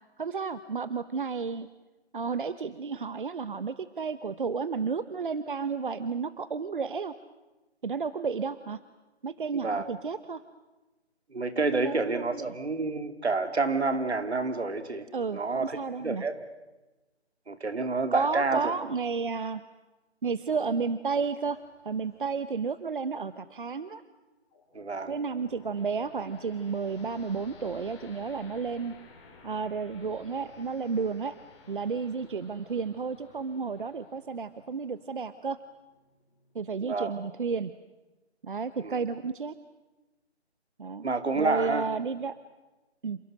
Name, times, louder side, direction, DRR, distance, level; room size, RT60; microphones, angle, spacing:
voice 1, 0.2-1.7 2.1-7.1 7.8-8.8 9.2-10.4 11.6-12.5 15.1-16.2 18.1-19.6 20.2-21.6 21.8-24.0 25.1-28.9 29.4-31.3 31.7-35.6 36.5-37.7 38.4-39.5 40.8-41.1 41.4-42.3 43.0-43.2, right 5 dB, 50° right, 14 dB, 0.9 m, -32 dB
voice 2, 11.3-16.5 17.5-18.7 24.7-25.2 36.8-37.1 38.8-39.0 41.0-41.9, right 3 dB, 75° right, 9 dB, 2.7 m, -29 dB
sound 1, 21.4-23.4 24.5-36.8, left 4 dB, 25° left, 4.8 m, -55 dB
28.5 x 28.0 x 6.4 m, 1.1 s
figure-of-eight pair, 155°, 33 cm